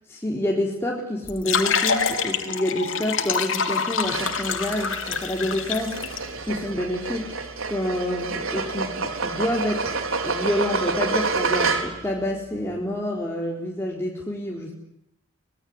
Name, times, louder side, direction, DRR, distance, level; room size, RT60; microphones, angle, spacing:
voice 1, 0.1-9.9 10.2-14.7, left 1 dB, 10° left, -2 dB, 4.3 m, -28 dB
sound 1, 1.2-6.2, left 6 dB, 65° left, 3.6 m, -26 dB
sound 2, 4.0-12.1, right 4 dB, 70° right, 4.3 m, -28 dB
25.5 x 22.0 x 9.9 m, 0.83 s
head